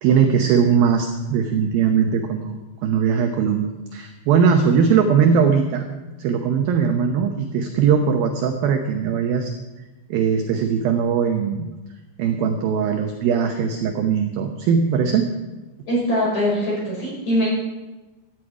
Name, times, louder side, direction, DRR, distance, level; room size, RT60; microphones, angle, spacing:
voice 1, 0.0-5.9 6.2-9.5 10.1-11.7 12.2-15.3, right 6 dB, 75° right, 4 dB, 2.2 m, -20 dB
voice 2, 15.9-17.5, equal, 30° left, -5 dB, 6.7 m, -22 dB
17.0 x 12.0 x 4.8 m, 1.1 s
omnidirectional pair, 5.3 m